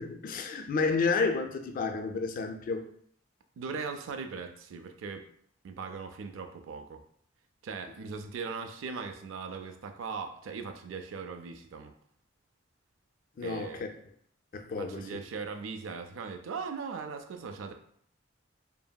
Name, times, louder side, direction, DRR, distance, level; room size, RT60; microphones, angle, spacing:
voice 1, 0.0-2.9 13.4-13.9 14.5-15.2, left 4 dB, 45° left, 0.3 m, -31 dB
voice 2, 3.6-5.3 5.6-7.0 7.6-11.9 13.4-13.8 14.8-17.7, right 5 dB, 80° right, 0.4 m, -39 dB
2.9 x 2.6 x 2.2 m
head